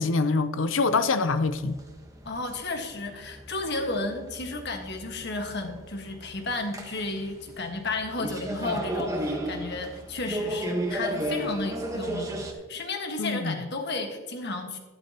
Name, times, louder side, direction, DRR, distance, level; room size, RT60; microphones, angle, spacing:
voice 1, 0.0-1.8 13.2-13.6, left 3 dB, 75° left, 0.6 m, -25 dB
sound 1, 1.3-12.5, right 1 dB, 15° right, 1.2 m, -34 dB
voice 2, 2.2-12.4 12.7-14.8, left 2 dB, 60° left, 1.5 m, -33 dB
12.0 x 11.5 x 2.9 m
head